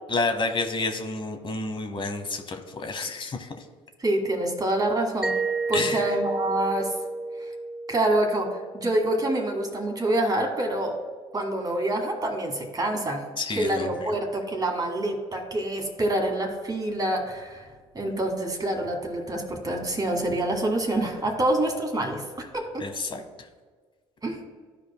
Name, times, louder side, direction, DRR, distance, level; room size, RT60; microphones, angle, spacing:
voice 1, 0.1-3.6 5.7-6.0 13.4-13.9 22.8-23.2, left 3 dB, 35° left, 6 dB, 1.1 m, -29 dB
voice 2, 4.0-5.3 5.7-6.9 7.9-11.0 11.3-13.2 13.6-17.7 18.0-22.8 24.2-24.4, right 1 dB, 25° right, 3 dB, 1.9 m, -26 dB
Mallet percussion, 5.2-9.8, right 3 dB, 5° right, 0.7 m, -32 dB
13.0 x 5.0 x 2.2 m, 1.5 s
supercardioid pair, 70°, 15 cm